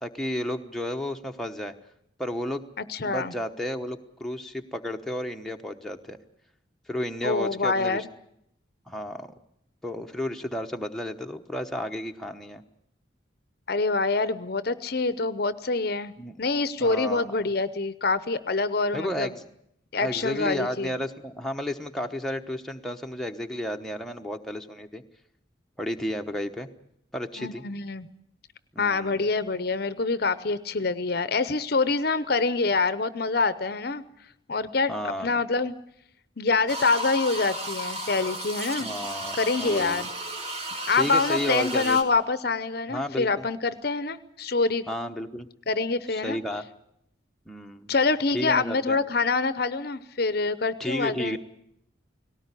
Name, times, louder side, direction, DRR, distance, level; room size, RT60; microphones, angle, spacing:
voice 1, 0.0-1.7 2.2-2.6 3.0-6.2 6.9-8.1 8.9-9.3 9.8-12.6 16.2-16.3 16.8-17.3 18.9-19.4 20.0-25.0 25.8-26.7 27.1-27.6 28.7-29.2 34.9-35.3 38.8-40.1 41.0-42.0 42.9-43.4 44.9-45.5 46.1-46.6 47.5-47.9 48.3-49.0 50.8-51.4, left 1 dB, ahead, 2 dB, 1.0 m, -32 dB
voice 2, 2.9-3.3 7.2-8.0 13.7-16.1 16.4-19.3 19.9-20.9 27.4-28.1 28.8-34.0 34.5-35.7 36.4-38.9 39.3-40.1 40.9-44.8 45.7-46.4 47.9-51.4, left 3 dB, 50° left, 14 dB, 0.8 m, -26 dB
sound 1, 36.7-42.0, right 1 dB, 30° right, 2.6 m, -34 dB
18.5 x 17.5 x 9.8 m, 0.76 s
head